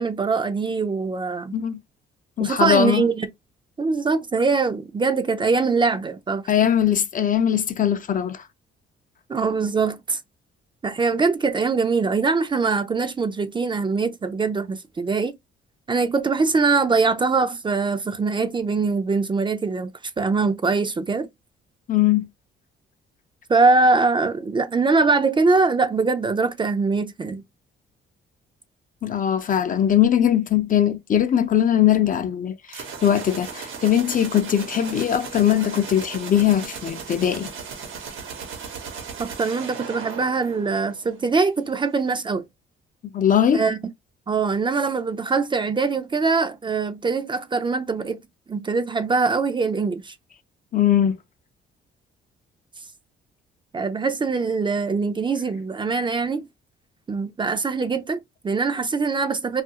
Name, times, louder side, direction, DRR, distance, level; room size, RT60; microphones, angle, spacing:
voice 1, 0.0-1.6 2.4-3.3 3.8-6.4 9.3-10.2 10.8-15.3 15.9-19.9 20.2-21.3 23.5-27.4 39.2-42.4 43.5-43.8 44.3-48.2 48.5-50.1 53.7-56.5 57.1-59.6, right 4 dB, 25° right, 0.4 m, -22 dB
voice 2, 2.4-3.0 6.5-8.4 21.9-22.3 29.0-37.5 43.1-43.7 50.7-51.2, left 10 dB, 45° left, 0.5 m, -20 dB
sound 1, 32.7-41.3, right 6 dB, 85° right, 1.0 m, -37 dB
2.6 x 2.5 x 2.7 m
cardioid pair, 90°, 20 cm